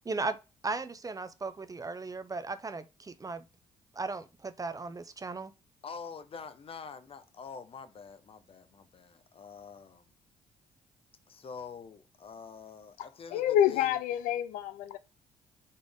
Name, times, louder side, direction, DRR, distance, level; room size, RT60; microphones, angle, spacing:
voice 1, 0.0-0.4 0.6-3.5 3.9-5.5, right 3 dB, 25° right, 0.6 m, -36 dB
voice 2, 5.8-10.0 11.3-14.0, left 5 dB, 40° left, 0.7 m, -46 dB
voice 3, 13.3-15.0, left 11 dB, 70° left, 0.4 m, -27 dB
4.1 x 3.3 x 3.5 m
hypercardioid pair, 50°, 14 cm